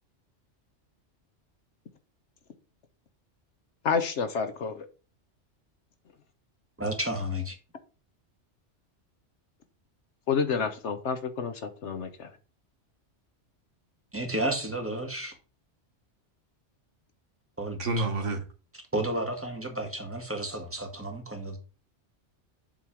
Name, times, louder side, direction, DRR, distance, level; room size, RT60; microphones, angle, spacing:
voice 1, 3.8-4.9 10.3-12.3, left 6 dB, 75° left, 1.2 m, -29 dB
voice 2, 6.8-7.5 14.1-15.3 17.6-18.0 18.9-21.6, right 1 dB, 10° right, 1.5 m, -32 dB
voice 3, 17.8-18.4, right 2 dB, 85° right, 1.6 m, -28 dB
7.6 x 3.2 x 5.7 m
omnidirectional pair, 1.2 m